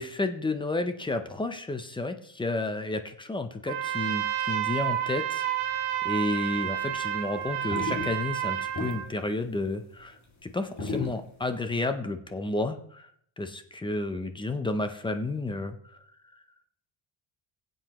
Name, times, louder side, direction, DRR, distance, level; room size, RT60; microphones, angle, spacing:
voice 1, 0.0-5.4 5.7-13.1 13.4-15.8, left 2 dB, 10° left, 8 dB, 0.4 m, -31 dB
Trumpet, 3.6-9.1, right 11 dB, 85° right, 1.7 m, -30 dB
sound 1, 5.6-6.8 7.1-11.7, left 3 dB, 35° left, 2.0 m, -35 dB
22.0 x 7.8 x 2.9 m, 0.68 s
cardioid pair, 170°, 50 cm